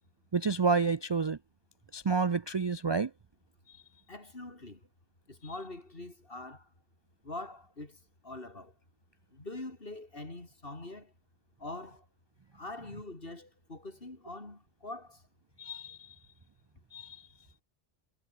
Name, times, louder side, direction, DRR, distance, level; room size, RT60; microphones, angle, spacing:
voice 1, 0.3-1.4 1.9-3.1 15.6-16.1 16.9-17.2, right 4 dB, 40° right, 0.4 m, -29 dB
voice 2, 4.1-4.9 5.3-6.7 7.2-8.7 9.3-11.1 11.6-12.1 12.5-15.2, left 2 dB, 55° left, 4.1 m, -44 dB
omnidirectional pair, 1.1 m